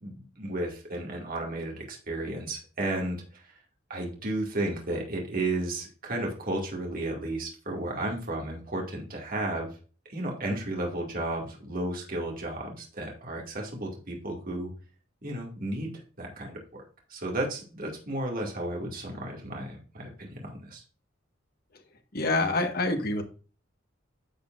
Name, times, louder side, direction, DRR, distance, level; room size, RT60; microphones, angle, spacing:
voice 1, 0.0-3.5 3.9-9.7 10.1-14.7 15.2-16.8 17.1-20.8, right 1 dB, 45° right, 0 dB, 2.4 m, -33 dB
voice 2, 22.1-23.2, left 2 dB, 50° left, 5 dB, 1.6 m, -26 dB
10.5 x 6.8 x 2.6 m, 0.37 s
head